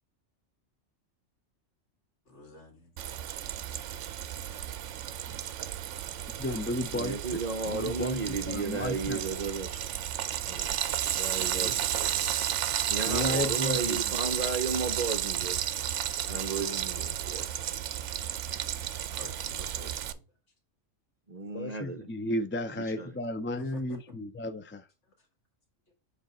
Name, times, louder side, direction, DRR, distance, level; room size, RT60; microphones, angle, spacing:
voice 1, 2.3-2.9 11.2-11.8 16.0-16.4 17.7-17.8 18.5-20.2 23.6-24.0 25.1-25.2 25.9-26.0, left 1 dB, 60° left, 2.2 m, -49 dB
Frying (food), 3.0-20.1, right 11 dB, 75° right, 0.9 m, -32 dB
voice 2, 6.4-7.2 7.7-9.2 13.1-14.2 21.5-24.9, left 1 dB, 20° left, 0.3 m, -33 dB
voice 3, 6.9-9.8 10.5-10.7 11.2-12.1 12.9-15.6 16.3-17.7 21.3-22.1 22.8-23.1, right 4 dB, 45° right, 0.6 m, -34 dB
7.3 x 3.4 x 4.3 m
omnidirectional pair, 1.3 m